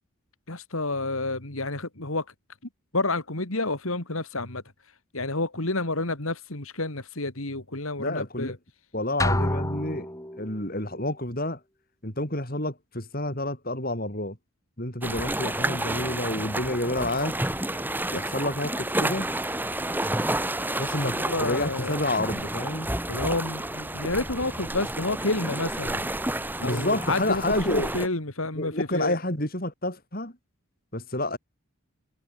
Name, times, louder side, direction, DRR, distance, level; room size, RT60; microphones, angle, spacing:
voice 1, 0.5-2.2 2.9-4.6 5.1-8.6 20.9-22.0 23.1-26.0 26.6-27.4 27.7-29.2, left 2 dB, 70° left, 3.2 m, -29 dB
voice 2, 8.0-8.6 8.9-10.1 10.4-11.6 12.0-14.4 14.8-17.3 18.1-19.3 20.8-22.9 26.6-27.9 28.5-30.3 30.9-31.4, left 1 dB, 40° left, 5.8 m, -29 dB
sound 1, 9.2-10.7, left 1 dB, 15° left, 5.7 m, -27 dB
sound 2, 15.0-28.1, right 1 dB, 10° right, 3.9 m, -30 dB
head